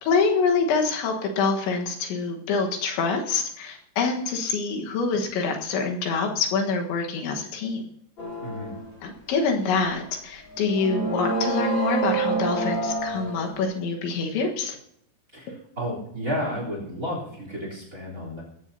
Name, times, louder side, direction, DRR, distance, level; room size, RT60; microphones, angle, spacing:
voice 1, 0.0-7.8 9.0-14.8, left 4 dB, 80° left, 2 dB, 3.8 m, -25 dB
sound 1, 8.2-8.9 9.8-9.9 10.4-13.6, right 3 dB, 30° left, 2.9 m, -28 dB
voice 2, 8.4-8.7 15.3-18.4, equal, 20° right, 0 dB, 3.5 m, -32 dB
20.0 x 15.0 x 2.8 m, 0.74 s
omnidirectional pair, 5.2 m